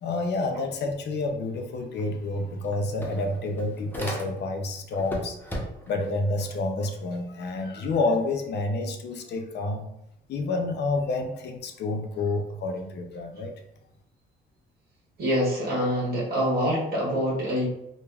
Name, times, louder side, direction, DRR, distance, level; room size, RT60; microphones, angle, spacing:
voice 1, 0.0-5.4 5.9-9.9 10.3-13.5, left 2 dB, 60° left, 4 dB, 0.4 m, -29 dB
sound 1, 2.0-2.1 2.4-4.6 5.0-6.0, equal, 10° left, 0.6 m, -36 dB
voice 2, 15.2-17.6, equal, 50° right, -5 dB, 1.3 m, -25 dB
3.2 x 2.0 x 2.3 m, 0.79 s
cardioid pair, 90°, 20 cm